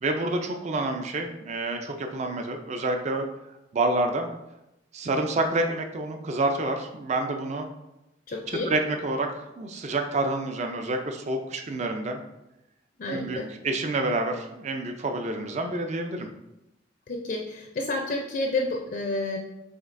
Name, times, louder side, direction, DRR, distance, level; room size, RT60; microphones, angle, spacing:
voice 1, 0.0-3.2 3.7-4.3 4.9-7.7 8.7-12.2 13.1-16.3, right 2 dB, 35° right, 5 dB, 0.4 m, -28 dB
voice 2, 8.3-8.7 13.0-13.5 17.1-19.4, left 2 dB, 45° left, 1 dB, 0.4 m, -30 dB
5.1 x 3.3 x 2.5 m, 0.92 s
head